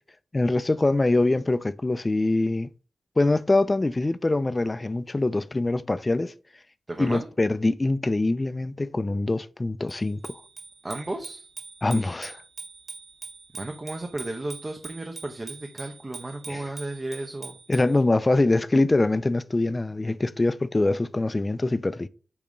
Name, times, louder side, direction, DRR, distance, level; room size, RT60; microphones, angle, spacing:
voice 1, 0.3-2.7 3.2-6.3 7.0-10.4 11.8-12.4 16.5-16.6 17.7-22.1, left 2 dB, 25° left, 0.4 m, -24 dB
voice 2, 6.9-7.3 10.8-11.5 13.5-17.6, right 2 dB, 25° right, 0.9 m, -34 dB
Bicycle bell, 9.9-18.0, right 4 dB, 45° right, 2.0 m, -43 dB
8.6 x 2.9 x 5.1 m
wide cardioid pair, 100°, 0 cm